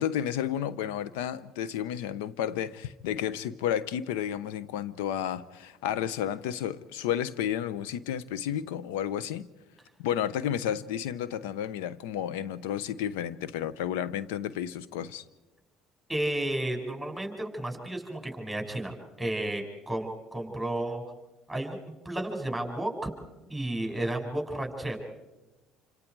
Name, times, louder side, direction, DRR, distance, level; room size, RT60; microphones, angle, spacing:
voice 1, 0.0-9.5 10.0-15.2, left 10 dB, 85° left, 0.8 m, -32 dB
voice 2, 16.1-21.0 21.5-21.8 22.0-23.1 23.5-25.0, right 1 dB, 5° right, 6.0 m, -32 dB
28.0 x 26.5 x 4.7 m
supercardioid pair, 70°, 0 cm